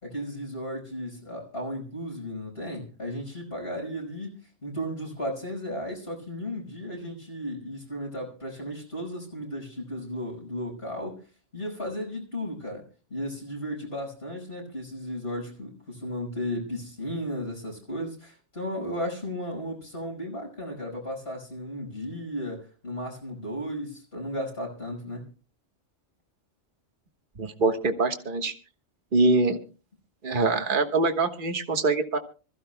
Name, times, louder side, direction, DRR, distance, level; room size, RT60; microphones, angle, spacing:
voice 1, 0.0-11.2 11.5-25.3, equal, 55° left, 5.4 m, -35 dB
voice 2, 27.4-28.5 29.1-29.6 30.2-32.2, right 3 dB, 45° right, 1.5 m, -24 dB
25.5 x 14.5 x 2.2 m
omnidirectional pair, 1.2 m